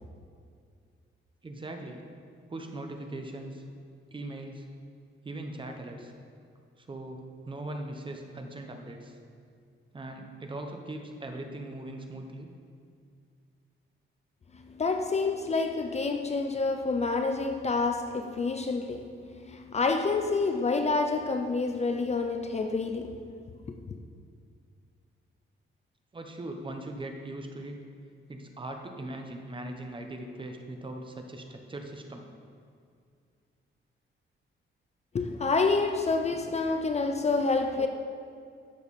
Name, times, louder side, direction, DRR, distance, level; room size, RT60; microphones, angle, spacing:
voice 1, 1.4-2.0 2.5-3.6 4.1-4.7 5.2-6.1 6.8-9.2 9.9-12.5 26.1-27.8 28.3-32.3, right 1 dB, 25° right, 0.9 m, -40 dB
voice 2, 14.6-23.2 35.1-37.9, left 3 dB, 30° left, 0.5 m, -28 dB
12.5 x 6.9 x 4.2 m
wide cardioid pair, 150°, 21 cm